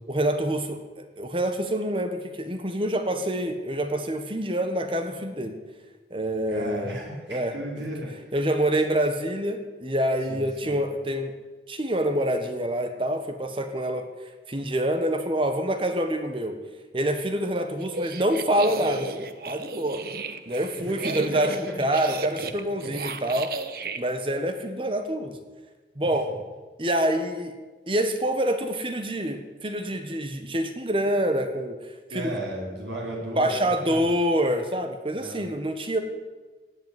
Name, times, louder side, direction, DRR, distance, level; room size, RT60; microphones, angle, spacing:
voice 1, 0.1-5.6 6.1-7.0 7.3-7.8 8.3-11.3 11.7-14.1 14.5-16.6 16.9-20.0 20.5-23.5 24.0-25.4 26.0-26.3 26.8-27.5 27.9-31.8 32.1-32.3 33.4-36.0, right 1 dB, 30° right, 7 dB, 1.4 m, -26 dB
voice 2, 6.5-8.3 10.3-10.8 21.0-21.4 22.8-22.9 32.1-33.6 33.8-34.1 35.2-35.5, right 1 dB, 90° right, -3 dB, 4.8 m, -35 dB
sound 1, 17.8-24.0, right 3 dB, 55° right, 1.1 m, -34 dB
17.0 x 8.4 x 9.7 m, 1.3 s
head